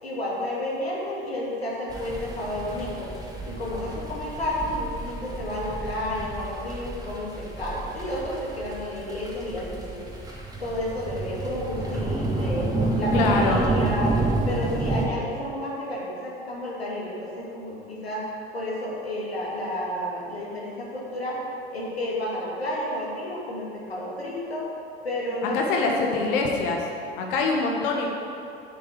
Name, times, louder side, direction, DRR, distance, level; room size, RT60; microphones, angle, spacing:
voice 1, 0.0-3.1 3.4-10.0 10.6-14.2 14.5-18.2 18.5-21.4 21.7-24.7 25.0-26.2, left 1 dB, 85° left, -5 dB, 2.5 m, -31 dB
sound 1, 1.9-15.1, right 2 dB, 10° right, 2.7 m, -30 dB
voice 2, 13.1-13.6 25.4-26.9 27.2-28.1, left 3 dB, 60° left, 0 dB, 1.5 m, -24 dB
8.4 x 8.4 x 7.5 m, 2.7 s
figure-of-eight pair, 70°, 30 cm